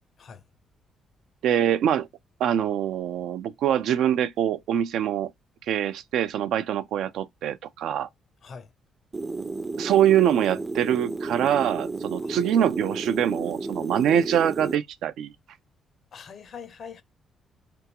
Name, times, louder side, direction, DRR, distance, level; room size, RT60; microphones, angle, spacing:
voice 1, 1.4-2.1 2.4-5.3 5.7-8.1 9.8-15.3, right 10 dB, 80° right, 0.4 m, -24 dB
sound 1, 9.1-14.8, right 3 dB, 25° right, 0.5 m, -32 dB
voice 2, 16.1-17.0, left 6 dB, 55° left, 0.7 m, -42 dB
3.8 x 3.5 x 2.9 m
cardioid pair, 90°, 0 cm